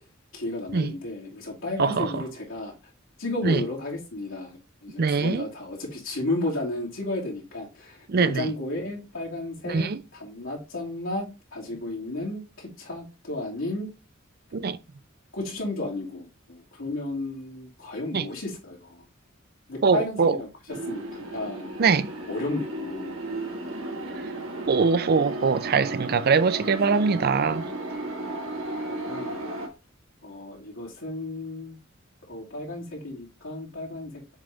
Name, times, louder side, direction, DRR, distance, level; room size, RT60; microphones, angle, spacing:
voice 1, 0.3-2.7 3.2-13.9 15.3-19.0 19.7-20.5 20.9-21.7 22.3-23.2 28.9-29.4 30.2-31.8 32.3-34.3, left 2 dB, 85° left, 2.6 m, -33 dB
voice 2, 1.8-2.2 3.4-3.6 5.0-5.5 8.1-8.5 9.7-10.0 14.5-14.8 18.1-18.3 19.8-20.4 21.8-22.1 24.7-27.6, right 5 dB, 50° right, 0.5 m, -22 dB
sound 1, 20.7-29.7, right 2 dB, 90° right, 1.7 m, -34 dB
7.2 x 3.4 x 3.9 m
head